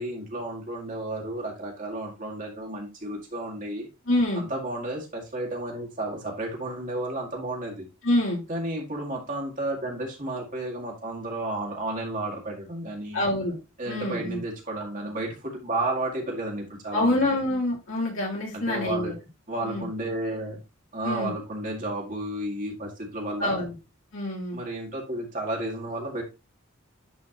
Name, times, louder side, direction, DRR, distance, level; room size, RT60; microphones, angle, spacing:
voice 1, 0.0-3.9 4.4-7.8 8.5-13.2 13.8-17.4 18.5-19.1 19.5-20.6 20.9-23.7 24.5-26.2, right 1 dB, 40° right, -1 dB, 2.1 m, -32 dB
voice 2, 4.1-4.4 8.0-8.4 13.1-13.6 13.9-14.4 16.9-19.1 19.6-19.9 21.0-21.3 23.4-23.7 24.1-24.6, left 1 dB, 70° left, -3 dB, 3.4 m, -26 dB
10.5 x 4.4 x 3.0 m, 0.28 s
head